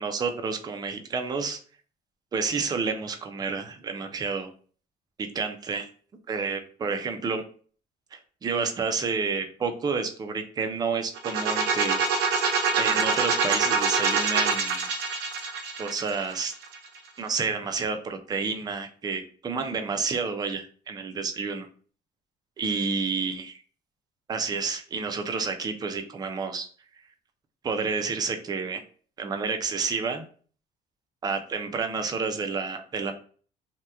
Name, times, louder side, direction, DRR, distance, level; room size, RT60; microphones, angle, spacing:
voice 1, 0.0-1.6 2.3-4.5 5.2-5.9 6.3-7.4 8.1-12.0 12.7-14.9 15.8-16.5 17.2-21.7 22.6-23.6 24.3-26.7 27.6-28.8 29.2-30.2 31.2-33.1, right 5 dB, 20° right, 6 dB, 0.4 m, -30 dB
sound 1, 11.2-17.0, right 5 dB, 65° right, 0.6 m, -25 dB
2.8 x 2.1 x 3.3 m, 0.43 s
cardioid pair, 150°, 18 cm